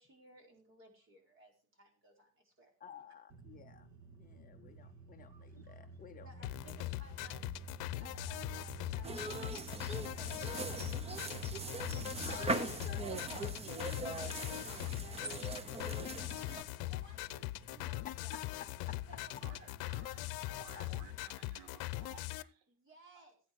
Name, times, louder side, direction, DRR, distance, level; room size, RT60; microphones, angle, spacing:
voice 1, 0.0-2.7 6.2-7.5 8.0-18.3 19.1-19.7 22.7-23.4, equal, 30° right, 2 dB, 4.6 m, -60 dB
voice 2, 2.8-3.9 4.2-6.3 10.8-10.9 12.2-13.1 18.0-18.4 18.9-19.0 20.7-21.0, left 7 dB, 25° left, 5 dB, 0.7 m, -53 dB
sound 1, 3.3-21.2, right 6 dB, 50° right, 2.1 m, -52 dB
voice 3, 5.1-5.8 11.4-11.5 19.4-22.7, right 8 dB, 65° right, 11 dB, 1.2 m, -58 dB
sound 2, 6.4-22.4, left 18 dB, 70° left, 0.8 m, -41 dB
sound 3, 9.0-16.6, right 3 dB, 15° right, 0.7 m, -41 dB
16.5 x 8.6 x 4.7 m, 0.39 s
cardioid pair, 175°, 38 cm